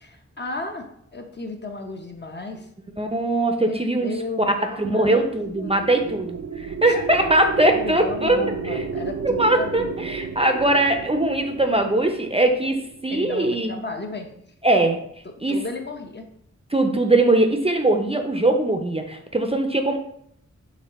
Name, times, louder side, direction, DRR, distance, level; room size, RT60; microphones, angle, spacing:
voice 1, 0.0-2.7 3.6-6.2 6.9-7.0 7.7-10.1 13.1-14.3 15.2-16.3, left 3 dB, 35° left, 3 dB, 0.7 m, -35 dB
voice 2, 3.0-4.1 4.5-8.8 9.2-13.7 14.6-15.0 15.4-15.6 16.7-20.0, right 2 dB, 20° right, 5 dB, 0.5 m, -21 dB
sound 1, 5.2-13.5, right 5 dB, 75° right, 0.4 m, -33 dB
4.1 x 3.1 x 4.0 m, 0.71 s
wide cardioid pair, 60°, 29 cm